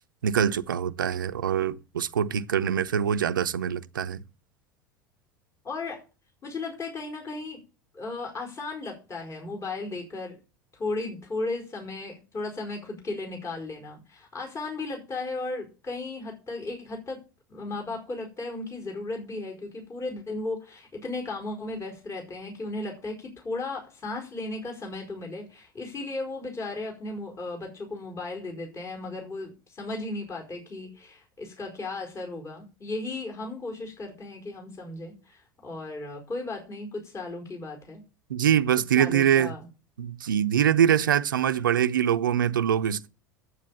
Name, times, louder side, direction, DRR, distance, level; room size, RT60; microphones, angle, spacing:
voice 1, 0.2-4.2 38.3-39.5 40.0-43.1, right 9 dB, 75° right, 0.6 m, -24 dB
voice 2, 5.6-6.0 6.4-7.6 7.9-10.4 10.8-17.2 17.5-38.0 38.9-39.7, left 2 dB, 25° left, 4.7 m, -35 dB
9.6 x 8.5 x 7.0 m
figure-of-eight pair, 75°, 11 cm